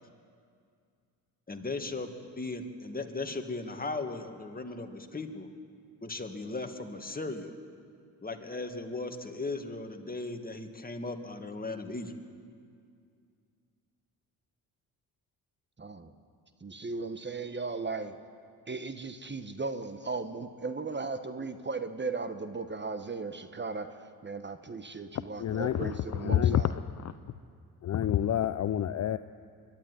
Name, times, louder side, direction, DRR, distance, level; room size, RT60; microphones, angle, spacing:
voice 1, 1.5-5.5 6.0-7.6 8.2-12.1, left 3 dB, 20° left, 2.1 m, -37 dB
voice 2, 15.8-16.1 16.6-18.2 18.7-26.7, right 4 dB, 25° right, 1.2 m, -37 dB
voice 3, 25.4-27.1 27.8-29.2, left 10 dB, 40° left, 0.6 m, -28 dB
23.0 x 12.0 x 9.6 m
hypercardioid pair, 55°, 43 cm